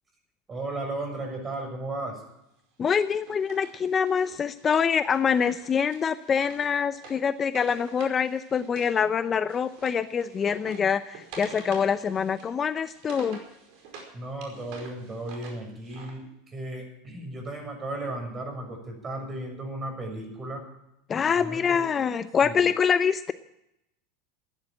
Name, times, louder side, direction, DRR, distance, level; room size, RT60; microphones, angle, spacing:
voice 1, 0.5-2.2 14.1-20.7 21.4-21.9 22.4-22.7, right 2 dB, 25° right, 4 dB, 6.9 m, -35 dB
voice 2, 2.8-13.4 21.1-23.3, left 7 dB, 30° left, 13 dB, 0.6 m, -25 dB
Wood, 2.9-9.0 9.2-14.1 14.4-16.1, right 4 dB, 60° right, 4.9 m, -47 dB
15.0 x 10.5 x 8.9 m, 0.83 s
hypercardioid pair, 85°, 0 cm